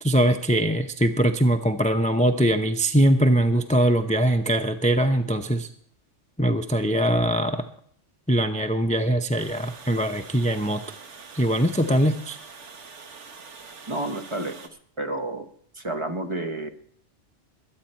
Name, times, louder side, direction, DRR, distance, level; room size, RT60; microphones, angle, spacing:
voice 1, 0.0-5.7 6.4-7.7 8.3-10.8 11.3-12.4, right 1 dB, 10° left, 7 dB, 0.4 m, -22 dB
Water, 9.4-14.7, right 5 dB, 75° right, 1.5 m, -44 dB
voice 2, 13.9-14.6 15.0-15.5 15.8-16.7, right 2 dB, 25° right, 6 dB, 1.1 m, -30 dB
22.5 x 8.8 x 4.3 m, 0.62 s
omnidirectional pair, 1.2 m